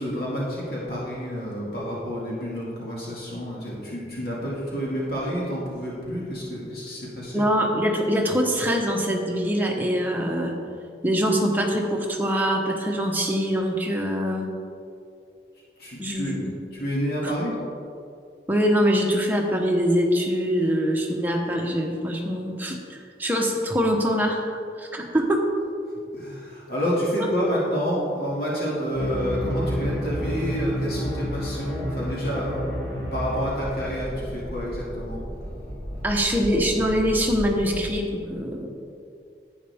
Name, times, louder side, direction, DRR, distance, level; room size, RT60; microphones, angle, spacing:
voice 1, 0.0-7.4 15.8-16.4 16.7-17.5 26.1-35.2, equal, 60° left, -6 dB, 2.3 m, -29 dB
voice 2, 7.3-10.5 11.0-14.5 16.0-16.5 18.5-24.5 24.8-25.4 36.0-38.7, equal, 10° right, 0 dB, 1.0 m, -23 dB
sound 1, 28.9-37.9, equal, 25° left, 1.4 m, -31 dB
11.0 x 8.8 x 3.6 m, 2.5 s
head